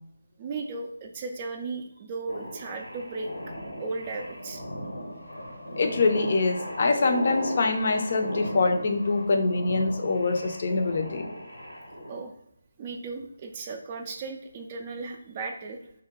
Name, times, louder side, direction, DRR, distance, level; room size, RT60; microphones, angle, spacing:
voice 1, 0.4-3.3 3.8-4.6 12.1-12.3 12.8-15.9, right 3 dB, 25° right, 3 dB, 0.3 m, -36 dB
sound 1, 2.3-12.2, left 1 dB, 80° left, 0.8 m, -37 dB
voice 2, 5.8-11.3, left 3 dB, 45° left, 5 dB, 0.4 m, -24 dB
2.7 x 2.2 x 3.6 m, 0.74 s
figure-of-eight pair, 150°, 0 cm